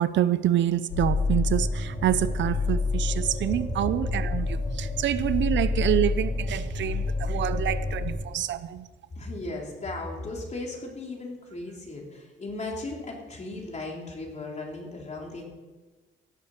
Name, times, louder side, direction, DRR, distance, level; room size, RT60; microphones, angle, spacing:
voice 1, 0.0-8.9, right 11 dB, 70° right, 14 dB, 0.6 m, -27 dB
sound 1, 0.9-8.1, left 3 dB, 70° left, 5.5 m, -28 dB
voice 2, 9.1-15.4, left 2 dB, 35° left, 0 dB, 3.8 m, -36 dB
16.5 x 7.2 x 6.6 m, 1.3 s
cardioid pair, 90°, 20 cm